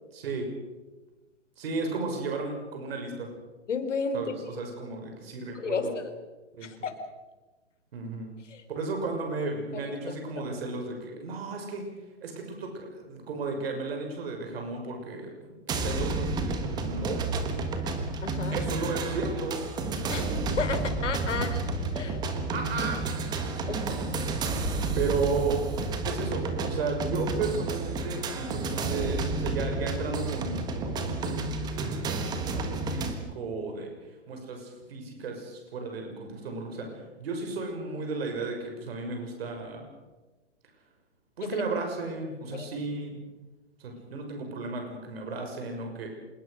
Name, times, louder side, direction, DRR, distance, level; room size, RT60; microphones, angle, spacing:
voice 1, 0.1-0.5 1.6-3.3 4.1-5.9 6.5-6.7 7.9-8.3 8.7-11.8 12.2-17.2 18.5-19.6 21.3-21.4 22.5-24.0 24.9-25.6 26.0-33.9 34.3-36.9 37.2-39.8 41.4-43.3 43.8-46.1, right 3 dB, 55° right, 3 dB, 6.3 m, -34 dB
voice 2, 3.7-4.2 4.6-4.7 5.5-6.1 6.6-6.9 8.5-8.6 9.7-10.0 18.2-18.6 20.1-21.6 21.9-22.2 23.7-23.8 42.5-42.7, left 5 dB, 80° left, 7 dB, 4.3 m, -32 dB
sound 1, 15.7-33.1, right 3 dB, 10° right, 1.5 m, -31 dB
26.5 x 20.5 x 6.6 m, 1.2 s
hypercardioid pair, 165°, 36 cm